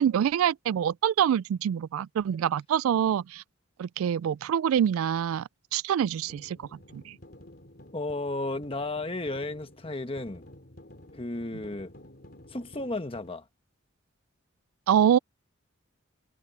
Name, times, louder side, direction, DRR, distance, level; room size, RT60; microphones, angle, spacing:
voice 1, 0.0-3.4 3.8-6.6 6.9-7.2 14.9-15.2, right 9 dB, 90° right, 0.3 m, -25 dB
sound 1, 6.3-13.3, left 1 dB, 50° left, 3.2 m, -51 dB
voice 2, 7.9-10.4 11.1-11.9 12.5-13.5, left 2 dB, 25° left, 1.2 m, -33 dB
head